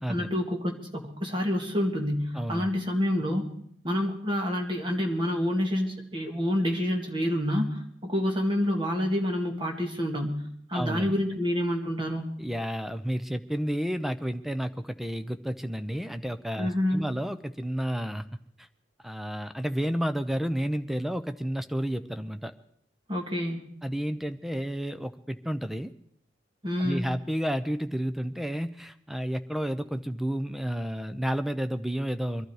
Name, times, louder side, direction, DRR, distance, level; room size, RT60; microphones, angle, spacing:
voice 1, 0.1-3.5 3.8-12.3 16.6-17.0 23.1-23.7 26.6-27.0, left 1 dB, 25° right, 2 dB, 2.0 m, -28 dB
voice 2, 2.3-2.7 10.7-11.1 12.4-18.7 19.0-22.5 23.8-25.9 26.8-32.5, equal, ahead, 10 dB, 0.6 m, -31 dB
22.5 x 12.0 x 4.9 m, 0.67 s
head